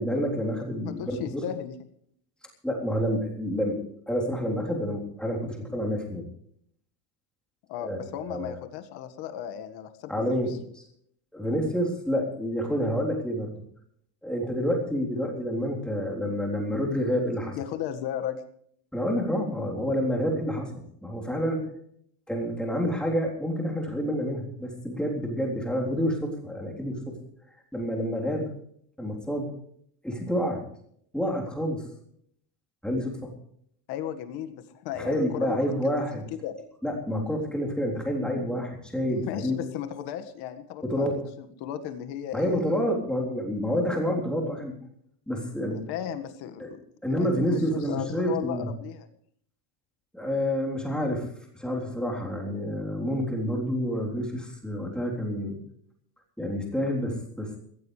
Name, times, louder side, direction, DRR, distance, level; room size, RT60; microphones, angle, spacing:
voice 1, 0.0-1.4 2.6-3.8 4.1-6.3 7.8-8.0 8.3-8.6 10.1-10.8 11.3-13.5 14.2-17.5 18.9-21.7 22.3-27.2 27.7-28.5 29.0-29.5 30.0-30.6 31.1-31.8 32.8-33.2 35.0-36.3 36.8-39.6 40.8-41.2 42.3-44.8 45.3-45.8 46.6-46.7 47.0-48.7 50.1-51.3 51.5-55.6 56.4-57.6, equal, ahead, -1 dB, 3.6 m, -28 dB
voice 2, 0.8-1.8 7.7-10.6 17.3-18.4 33.9-35.6 35.8-35.9 36.3-36.6 39.1-42.6 45.7-46.8 47.1-49.1, left 10 dB, 50° left, 8 dB, 1.8 m, -35 dB
22.0 x 15.5 x 3.3 m, 0.65 s
cardioid pair, 170°, 49 cm